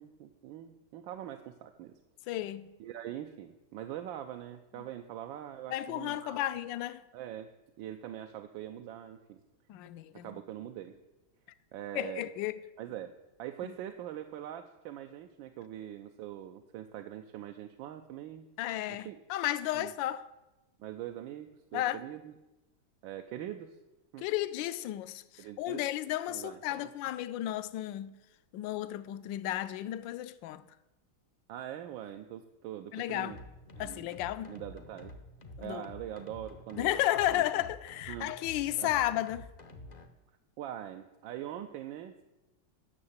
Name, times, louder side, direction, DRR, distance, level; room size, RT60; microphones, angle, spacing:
voice 1, 0.0-2.0 2.8-6.5 7.1-7.5 7.8-9.4 10.1-10.9 11.7-12.3 12.8-13.1 13.4-18.5 19.0-19.2 19.7-19.9 20.8-22.3 23.0-23.8 24.1-24.2 25.4-25.8 26.3-26.9 31.5-33.4 33.8-34.0 34.5-35.1 35.6-37.4 38.1-38.3 38.8-39.0 40.6-42.2, right 11 dB, 75° right, 1.3 m, -43 dB
voice 2, 2.3-2.7 4.8-4.9 5.7-7.0 9.7-10.3 11.9-12.5 13.6-13.7 18.6-20.2 21.7-22.0 24.2-28.1 28.5-30.7 32.9-33.3 33.8-34.6 35.6-35.9 36.7-39.5, left 14 dB, 75° left, 1.2 m, -33 dB
sound 1, 33.3-40.1, left 2 dB, 50° left, 0.5 m, -49 dB
9.9 x 6.5 x 8.0 m
omnidirectional pair, 2.2 m